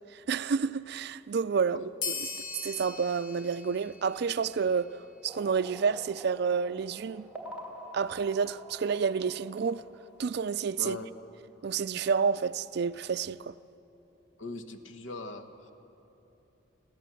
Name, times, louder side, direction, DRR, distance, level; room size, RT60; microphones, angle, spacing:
voice 1, 0.1-2.3 2.6-7.3 7.9-9.8 10.2-11.0 11.6-13.5, right 6 dB, 55° right, 0.4 m, -29 dB
sound 1, 2.0-5.0, left 5 dB, 45° left, 1.2 m, -40 dB
sound 2, 5.3-10.6, right 1 dB, 5° right, 2.5 m, -47 dB
voice 2, 14.4-15.5, left 2 dB, 85° left, 1.3 m, -39 dB
25.5 x 14.5 x 7.7 m
head